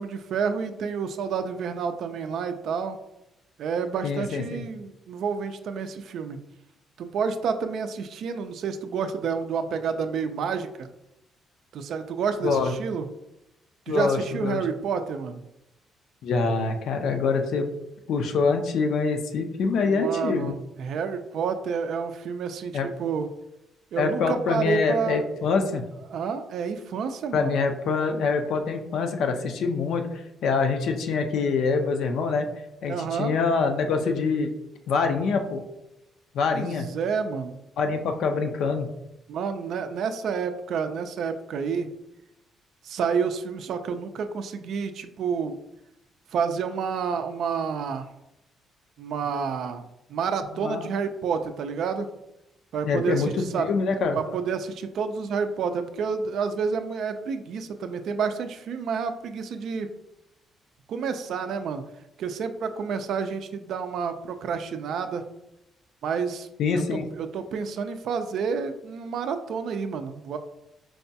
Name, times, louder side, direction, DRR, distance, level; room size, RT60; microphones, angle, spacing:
voice 1, 0.0-3.0 3.6-6.4 7.0-10.9 11.7-13.1 13.9-15.4 19.8-23.3 23.9-25.3 26.1-27.6 32.9-33.4 36.5-37.5 39.3-41.9 42.8-45.6 46.3-48.1 49.0-49.8 50.1-52.1 52.7-53.6 54.2-59.9 60.9-61.8 62.2-65.2 66.0-66.5 66.7-70.4, right 6 dB, 70° right, 8 dB, 0.3 m, -29 dB
voice 2, 4.0-4.6 12.4-12.7 13.9-14.6 16.2-17.7 18.1-20.5 22.7-22.9 24.0-25.8 27.3-30.0 30.4-32.5 32.8-34.5 34.9-35.6 36.3-36.9 37.8-38.9 50.6-50.9 52.8-53.3 53.6-54.2 66.6-67.1, left 4 dB, 75° left, 5 dB, 0.4 m, -25 dB
4.6 x 2.2 x 2.7 m, 0.87 s
cardioid pair, 90°, 0 cm